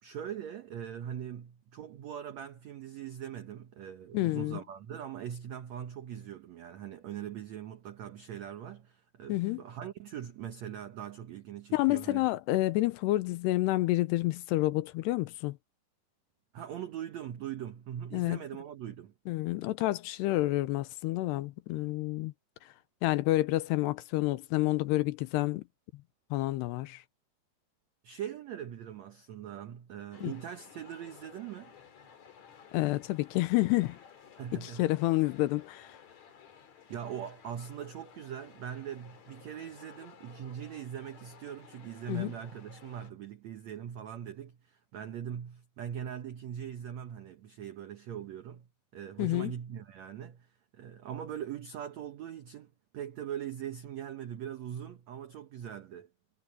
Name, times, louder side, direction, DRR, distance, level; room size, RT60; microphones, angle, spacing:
voice 1, 0.0-12.3 16.5-19.1 28.0-31.7 34.4-34.9 36.9-56.1, right 9 dB, 90° right, 1.5 m, -41 dB
voice 2, 4.1-4.6 9.3-9.6 11.7-15.6 18.1-18.4 19.3-22.3 23.0-25.6 26.3-27.0 30.2-30.3 32.7-34.0 34.5-35.9 42.1-42.3 49.2-49.5, left 18 dB, 85° left, 2.9 m, -29 dB
sound 1, 30.1-43.1, left 7 dB, 50° left, 3.2 m, -55 dB
omnidirectional pair, 4.8 m